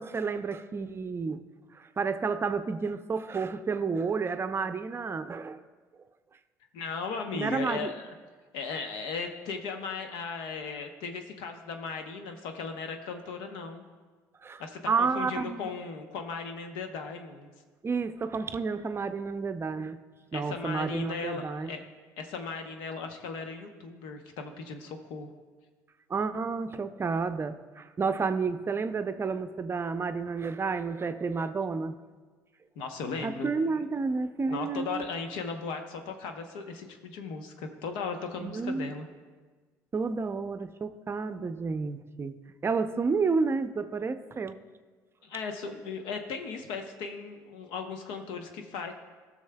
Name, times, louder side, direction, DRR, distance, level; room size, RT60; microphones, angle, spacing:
voice 1, 0.0-1.4 1.7-5.6 7.3-7.9 14.4-15.7 17.8-20.0 20.3-21.7 26.1-32.0 33.2-35.1 38.4-38.9 39.9-44.6, right 4 dB, 30° right, 9 dB, 0.5 m, -31 dB
voice 2, 6.7-8.1 8.5-13.8 14.6-17.5 20.3-21.8 22.2-25.3 32.8-33.8 34.5-39.0 45.2-48.9, left 5 dB, 75° left, 5 dB, 0.9 m, -37 dB
19.0 x 6.3 x 2.3 m, 1.4 s
hypercardioid pair, 70°, 8 cm